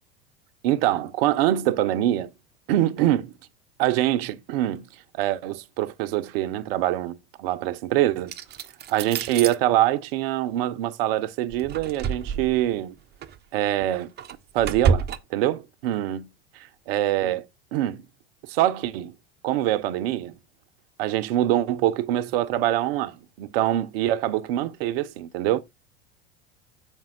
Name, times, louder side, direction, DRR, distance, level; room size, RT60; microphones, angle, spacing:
voice 1, 0.6-2.3 2.7-3.3 3.8-4.8 5.1-8.3 8.9-12.9 13.5-14.1 14.5-16.3 16.9-17.4 17.7-18.0 18.5-19.1 19.4-20.4 21.0-25.6, right 13 dB, 60° right, 0.9 m, -24 dB
sound 1, 8.3-9.5 11.5-12.7 13.2-13.4 13.8-15.2, right 6 dB, 30° right, 0.9 m, -28 dB
7.3 x 5.4 x 3.8 m
hypercardioid pair, 90°, 32 cm